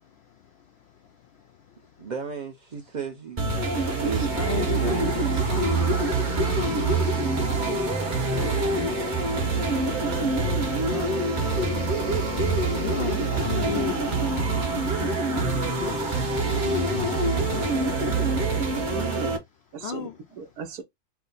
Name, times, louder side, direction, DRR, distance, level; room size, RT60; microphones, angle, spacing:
voice 1, 0.0-2.1 3.6-8.5 9.0-18.9 19.8-20.2, left 9 dB, 75° left, 0.6 m, -38 dB
voice 2, 2.0-3.4 4.0-4.3 4.5-5.3, right 4 dB, 50° right, 0.5 m, -34 dB
sound 1, 3.4-19.4, right 3 dB, 35° right, 1.0 m, -25 dB
voice 3, 11.7-12.1 13.1-13.3 14.1-14.3 18.7-19.4 19.7-20.8, right 6 dB, 80° right, 1.3 m, -37 dB
4.6 x 2.1 x 3.9 m
omnidirectional pair, 1.6 m